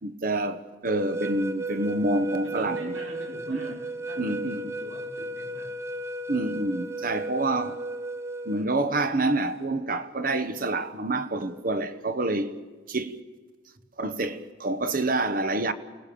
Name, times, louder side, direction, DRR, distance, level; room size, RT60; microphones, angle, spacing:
voice 1, 0.0-2.9 3.5-3.8 4.2-4.8 6.3-7.8 8.4-12.5 12.9-13.2 14.0-15.7, right 2 dB, 50° right, 1.2 m, -27 dB
sound 1, 0.9-8.6, right 1 dB, 15° right, 0.8 m, -34 dB
voice 2, 2.4-5.8, right 1 dB, 90° right, 5.8 m, -44 dB
28.5 x 18.5 x 7.0 m
head